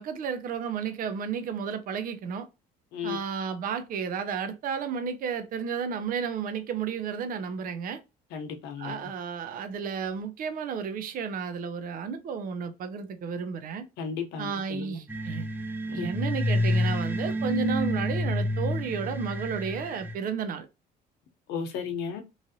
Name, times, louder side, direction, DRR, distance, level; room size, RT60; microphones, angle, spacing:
voice 1, 0.0-2.5 3.0-8.0 8.8-13.8 14.4-15.5 15.9-20.7, right 6 dB, 55° right, 0.6 m, -32 dB
voice 2, 2.9-3.2 8.3-9.1 14.0-15.0 15.9-16.1 21.5-22.2, left 6 dB, 90° left, 0.8 m, -34 dB
sound 1, 15.1-20.1, equal, 10° right, 0.5 m, -28 dB
3.1 x 2.5 x 2.7 m
cardioid pair, 110°, 17 cm